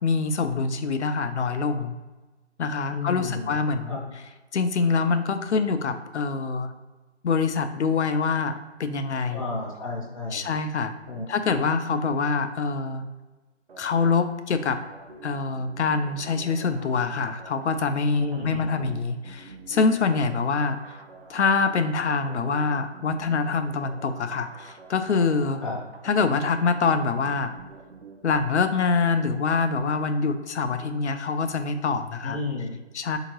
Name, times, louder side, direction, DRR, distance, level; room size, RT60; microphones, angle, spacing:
voice 1, 0.0-1.9 2.6-4.0 4.5-6.7 7.2-9.4 10.3-10.9 11.3-13.0 13.8-14.8 15.2-20.8 21.3-25.6 26.0-27.6 28.2-32.4 32.9-33.2, left 4 dB, 70° left, 9 dB, 0.5 m, -25 dB
voice 2, 2.9-3.5 3.9-4.0 9.3-10.4 11.1-11.2 18.1-18.9 25.6-25.8 32.2-32.8, left 3 dB, 30° left, -4 dB, 0.7 m, -32 dB
sound 1, 13.7-28.4, right 4 dB, 55° right, 0.6 m, -47 dB
3.6 x 2.8 x 2.9 m, 1.2 s
figure-of-eight pair, 165°, 35 cm